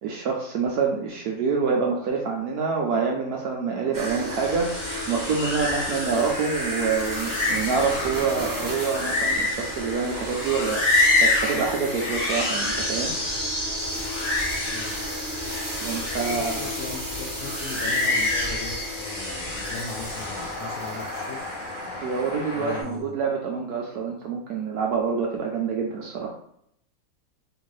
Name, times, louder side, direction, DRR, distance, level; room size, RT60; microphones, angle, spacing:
voice 1, 0.0-4.7 5.1-10.8 11.2-13.1 15.8-16.7 21.9-26.3, right 5 dB, 75° right, 0 dB, 0.9 m, -26 dB
sound 1, 3.9-22.5 22.7-22.8, equal, 20° right, 0.5 m, -33 dB
sound 2, 4.4-20.5, left 2 dB, 90° left, 0.3 m, -28 dB
Train, 15.4-15.5 15.7-22.8, left 2 dB, 35° left, 0.9 m, -38 dB
voice 2, 16.2-21.4 22.5-23.1, left 4 dB, 70° left, -1 dB, 0.9 m, -38 dB
3.6 x 2.5 x 3.1 m, 0.71 s
omnidirectional pair, 2.0 m